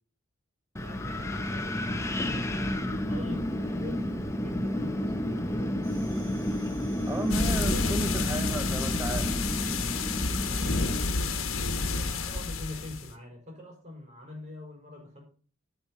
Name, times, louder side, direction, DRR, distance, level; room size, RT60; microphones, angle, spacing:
Wind, 0.8-11.0, left 1 dB, 15° left, 1.0 m, -31 dB
voice 1, 0.8-2.5 3.1-5.9 7.3-7.9 10.4-15.2, left 1 dB, 35° right, 5.4 m, -45 dB
sound 1, 5.8-11.5, right 3 dB, 80° right, 4.0 m, -54 dB
voice 2, 7.1-9.5, right 1 dB, 10° right, 0.7 m, -34 dB
sound 2, 7.3-13.1, left 3 dB, 75° left, 1.3 m, -29 dB
9.1 x 8.1 x 5.6 m
head